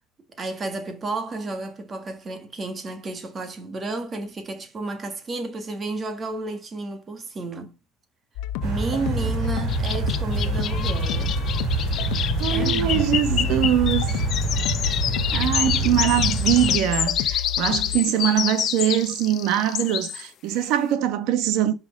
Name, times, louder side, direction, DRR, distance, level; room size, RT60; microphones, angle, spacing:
voice 1, 0.4-7.7 8.6-11.4 12.5-13.6 15.8-16.0, right 3 dB, 20° right, 1.7 m, -32 dB
sound 1, 8.4-18.0, left 10 dB, 85° left, 1.1 m, -30 dB
sound 2, 8.6-16.8, right 4 dB, 45° right, 5.3 m, -26 dB
sound 3, 9.7-20.2, left 10 dB, 35° left, 0.9 m, -27 dB
voice 2, 12.4-14.1 15.3-21.7, right 11 dB, 60° right, 1.5 m, -23 dB
11.0 x 6.0 x 5.3 m
cardioid pair, 180°, 0 cm